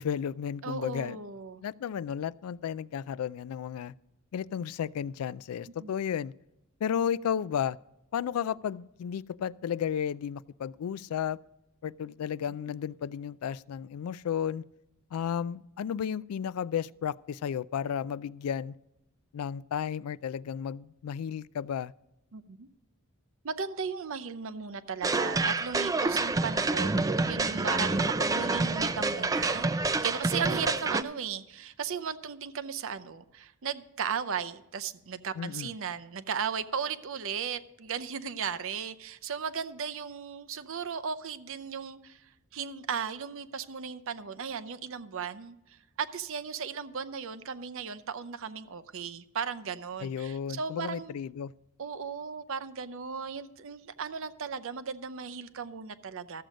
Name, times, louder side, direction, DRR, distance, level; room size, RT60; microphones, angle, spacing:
voice 1, 0.0-1.2 1.6-3.9 4.3-6.3 6.8-7.8 8.1-11.4 11.8-14.6 15.1-18.7 19.3-21.9 35.4-35.7 50.0-51.5, left 8 dB, 90° left, 0.3 m, -33 dB
voice 2, 0.6-1.6 5.8-5.9 22.3-22.7 23.4-51.1 51.8-56.4, right 6 dB, 65° right, 0.6 m, -36 dB
sound 1, 25.0-31.0, right 3 dB, 15° right, 0.4 m, -28 dB
13.5 x 7.7 x 5.1 m
head